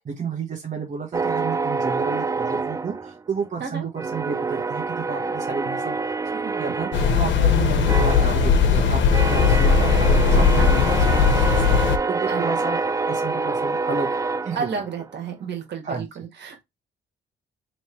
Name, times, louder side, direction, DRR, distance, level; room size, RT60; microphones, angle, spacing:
voice 1, 0.0-3.8 4.1-6.0 6.2-6.9 7.2-11.8 12.1-12.8 13.0-14.2 14.4-14.7 15.8-16.0, right 5 dB, 40° right, 1.1 m, -31 dB
sound 1, 1.1-3.6 4.0-15.2, right 4 dB, 15° right, 0.3 m, -27 dB
sound 2, 6.9-12.0, left 6 dB, 70° left, 0.9 m, -18 dB
voice 2, 10.2-10.7 12.3-12.7 14.5-16.6, right 6 dB, 60° right, 1.7 m, -32 dB
3.1 x 3.1 x 4.4 m
cardioid pair, 90°, 20 cm